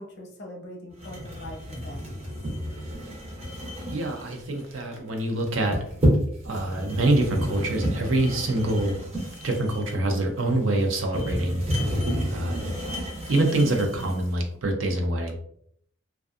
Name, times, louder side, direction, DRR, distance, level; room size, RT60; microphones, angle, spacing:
voice 1, 0.0-2.2, left 1 dB, 55° left, 1 dB, 0.7 m, -42 dB
sound 1, 1.0-14.3, equal, 30° right, 0.6 m, -30 dB
voice 2, 3.9-5.8 6.4-9.0 9.4-11.6 12.3-12.7 13.3-15.3, right 1 dB, 80° right, 3 dB, 0.6 m, -25 dB
2.5 x 2.3 x 2.3 m, 0.66 s
head